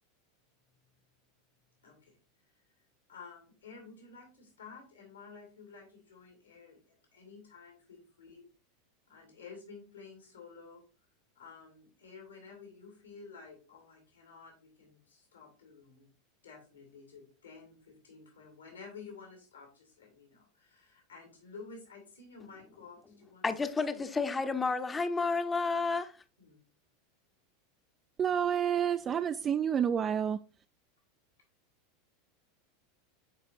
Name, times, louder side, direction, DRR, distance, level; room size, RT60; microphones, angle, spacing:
voice 1, 1.8-2.2 2.4-2.5 3.1-8.4 9.1-10.8 11.3-16.1 16.4-23.4 23.9-24.0 26.4-26.6, left 5 dB, 80° left, 2.4 m, -52 dB
voice 2, 23.4-26.2, left 4 dB, 15° left, 0.7 m, -31 dB
voice 3, 28.2-30.4, right 8 dB, 30° right, 0.3 m, -29 dB
9.4 x 4.8 x 2.6 m
figure-of-eight pair, 85°, 0 cm